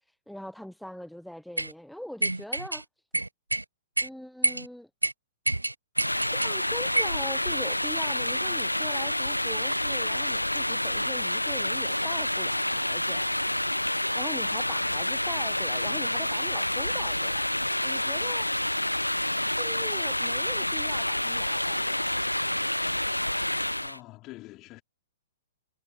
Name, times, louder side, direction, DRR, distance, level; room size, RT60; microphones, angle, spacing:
voice 1, 0.1-2.8 4.0-4.9 6.3-13.3 14.1-17.5 17.8-18.5 19.4-22.2, equal, ahead, 0.9 m, -41 dB
sound 1, 1.6-1.7 2.2-2.8 3.1-3.6 4.0-4.1 4.4-4.7 5.0-5.1 5.5-6.5 7.0-7.2, right 2 dB, 80° right, 1.0 m, -27 dB
sound 2, 6.0-24.0, left 1 dB, 85° left, 0.9 m, -28 dB
voice 2, 23.8-24.8, left 19 dB, 30° left, 5.0 m, -46 dB
figure-of-eight pair, 115°, 0 cm